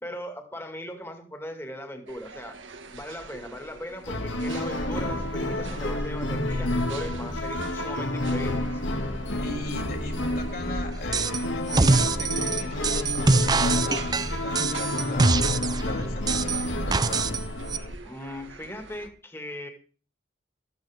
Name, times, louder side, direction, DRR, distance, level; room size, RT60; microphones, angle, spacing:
voice 1, 0.0-2.6 2.9-8.8 18.0-19.7, left 1 dB, 15° left, 5 dB, 2.1 m, -38 dB
sound 1, 2.1-19.1, right 4 dB, 90° right, 1.8 m, -45 dB
sound 2, 4.0-18.0, left 1 dB, 85° left, 2.1 m, -29 dB
voice 2, 9.4-17.3, left 2 dB, 55° left, 4 dB, 4.2 m, -39 dB
sound 3, 11.1-11.4 11.7-15.8 16.3-17.4 17.7-17.8, right 3 dB, 20° right, 0.5 m, -24 dB
14.0 x 13.5 x 3.5 m, 0.39 s
head